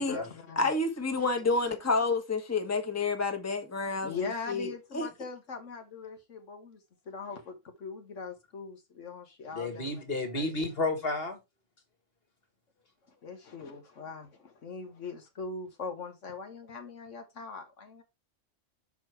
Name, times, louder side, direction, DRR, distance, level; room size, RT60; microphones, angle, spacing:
voice 1, 0.0-0.7 1.1-1.2 4.0-6.8 7.0-10.0 10.3-10.6 13.1-18.0, left 4 dB, 75° left, 1.6 m, -41 dB
voice 2, 0.6-4.7 4.9-5.1, left 3 dB, 15° left, 1.2 m, -29 dB
voice 3, 9.5-11.4, left 2 dB, 50° left, 2.1 m, -32 dB
6.8 x 4.7 x 4.6 m
omnidirectional pair, 1.3 m